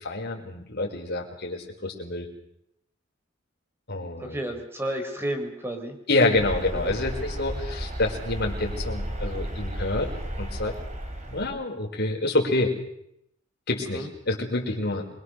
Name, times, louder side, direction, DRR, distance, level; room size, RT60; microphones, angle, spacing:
voice 1, 0.0-2.3 3.9-4.4 6.1-10.1 10.4-10.7 11.3-12.7 13.7-15.1, left 2 dB, 55° left, 1 dB, 5.3 m, -27 dB
voice 2, 4.2-6.0 6.8-6.9 13.9-14.1, right 1 dB, 10° right, 5 dB, 4.6 m, -31 dB
sound 1, 6.3-11.5, equal, 35° right, 4.3 m, -33 dB
27.0 x 23.5 x 6.7 m, 0.77 s
head